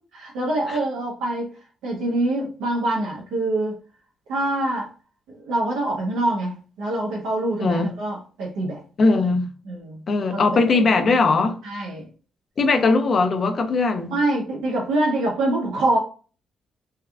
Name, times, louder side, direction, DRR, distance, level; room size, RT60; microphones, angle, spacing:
voice 1, 0.3-1.5 1.8-3.7 4.3-4.9 5.5-8.8 9.7-10.0 10.3-10.8 11.6-12.0 14.1-16.0, right 1 dB, 90° right, 1.0 m, -25 dB
voice 2, 9.0-9.5 10.1-11.6 12.6-14.2, left 3 dB, 45° left, 0.6 m, -19 dB
3.5 x 2.3 x 3.4 m
cardioid pair, 90°, 0 cm